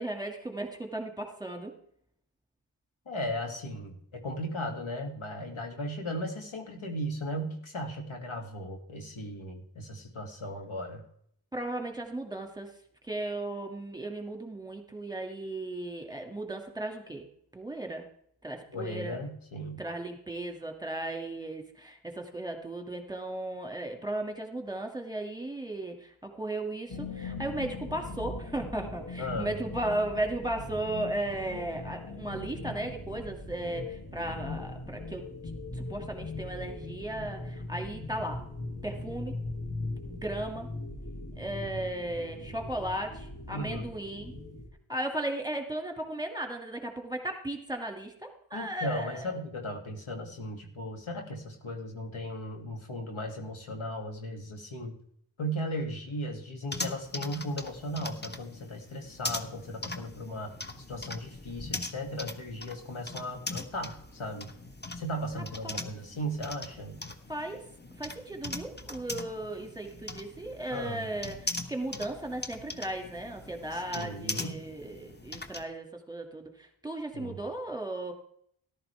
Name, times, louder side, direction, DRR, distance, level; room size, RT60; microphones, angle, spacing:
voice 1, 0.0-1.7 11.5-12.7 13.0-17.2 17.5-18.1 18.4-19.2 19.8-35.2 35.7-38.5 38.8-39.4 40.0-40.7 41.4-44.3 44.9-49.3 65.4-65.9 67.3-67.6 68.0-78.1, right 1 dB, 10° right, 3 dB, 2.2 m, -36 dB
voice 2, 3.1-11.0 18.7-19.8 29.2-29.5 43.5-43.9 48.5-54.9 55.4-60.5 60.9-64.5 65.0-67.0 70.7-71.1 73.7-74.6 77.1-77.4, equal, 75° left, 2 dB, 2.4 m, -36 dB
sound 1, 26.9-44.7, left 2 dB, 40° left, 2.6 m, -40 dB
sound 2, 56.7-75.6, left 2 dB, 20° left, 1.2 m, -41 dB
13.5 x 12.0 x 3.4 m, 0.66 s
cardioid pair, 40°, 49 cm